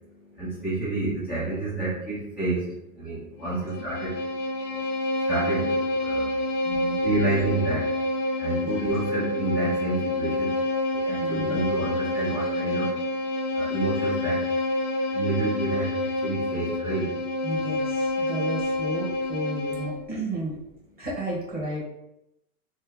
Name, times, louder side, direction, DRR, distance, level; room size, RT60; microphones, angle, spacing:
voice 1, 0.3-2.7 2.9-4.2 4.7-4.8 5.2-6.4 6.9-7.9 8.4-10.5 10.9-12.9 13.5-14.4 15.1-17.1, right 2 dB, 5° right, -12 dB, 0.6 m, -29 dB
Bowed string instrument, 3.4-20.0, left 2 dB, 55° left, 0.9 m, -28 dB
voice 2, 6.6-7.0 8.6-8.7 11.1-11.6 17.4-20.5 21.0-21.8, right 1 dB, 20° right, -5 dB, 1.3 m, -33 dB
3.3 x 2.1 x 3.8 m, 0.85 s
hypercardioid pair, 130°, 45 cm